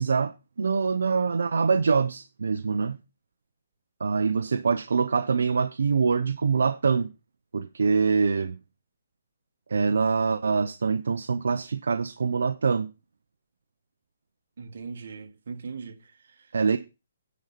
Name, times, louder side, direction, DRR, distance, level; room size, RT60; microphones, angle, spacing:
voice 1, 0.0-3.0 4.0-7.1 7.5-8.6 9.7-12.9 16.5-16.8, right 5 dB, 80° right, 0.7 m, -24 dB
voice 2, 14.6-16.5, right 5 dB, 65° right, 1.8 m, -40 dB
9.6 x 5.3 x 5.8 m
hypercardioid pair, 155°, 0 cm